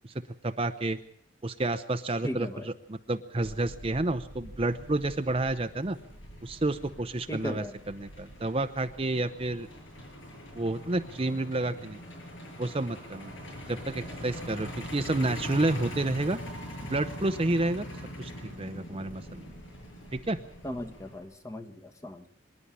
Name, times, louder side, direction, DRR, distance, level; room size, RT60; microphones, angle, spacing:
voice 1, 0.4-1.0 1.4-6.0 6.4-9.7 10.5-12.0 12.6-13.3 13.7-16.4 16.8-17.9 18.2-19.5 20.1-20.4, right 2 dB, 30° right, 9 dB, 0.7 m, -30 dB
voice 2, 2.2-2.7 7.3-7.7 20.6-22.3, equal, 15° left, 5 dB, 1.4 m, -37 dB
Truck, 3.4-21.2, equal, 80° left, 7.0 m, -43 dB
25.0 x 11.0 x 9.9 m, 0.69 s
head